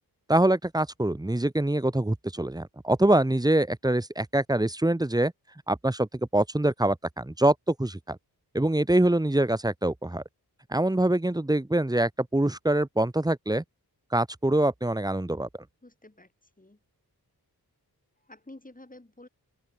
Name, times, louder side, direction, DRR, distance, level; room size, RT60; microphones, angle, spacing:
voice 1, 0.3-5.3 5.7-6.1 6.3-8.2 8.5-10.2 10.7-13.6 14.1-15.5, right 1 dB, 10° right, 1.0 m, -24 dB
voice 2, 15.8-16.3 16.6-16.8 18.2-19.3, left 1 dB, 20° left, 4.8 m, -50 dB
open air
wide cardioid pair, 80°, 39 cm